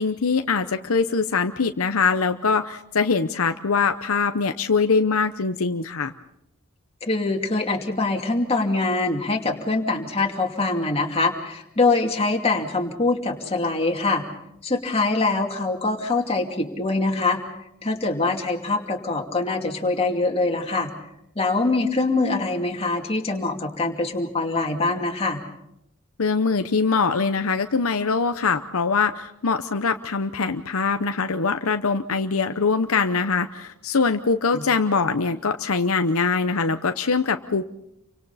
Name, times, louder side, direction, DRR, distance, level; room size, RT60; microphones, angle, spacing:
voice 1, 0.0-6.1 26.2-37.7, left 4 dB, 70° left, 8 dB, 0.8 m, -23 dB
voice 2, 7.1-14.2 14.6-17.4 17.8-20.9 21.4-25.4 34.5-34.6, left 3 dB, 25° left, 1 dB, 2.6 m, -24 dB
30.0 x 25.0 x 4.2 m, 0.82 s
head